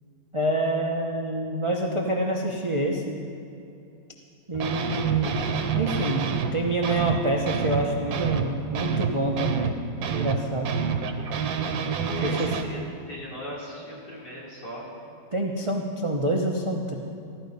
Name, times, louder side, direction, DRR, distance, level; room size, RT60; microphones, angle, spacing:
voice 1, 0.3-3.2 4.5-5.5 5.7-10.7 12.2-12.5 15.3-17.0, right 1 dB, 30° right, 0 dB, 0.5 m, -27 dB
sound 1, 4.5-6.5 6.8-12.6, right 6 dB, 80° right, 1.6 m, -27 dB
voice 2, 12.1-12.8 13.1-14.9, equal, 60° left, -6 dB, 3.8 m, -38 dB
15.5 x 12.5 x 5.4 m, 2.6 s
omnidirectional pair, 2.0 m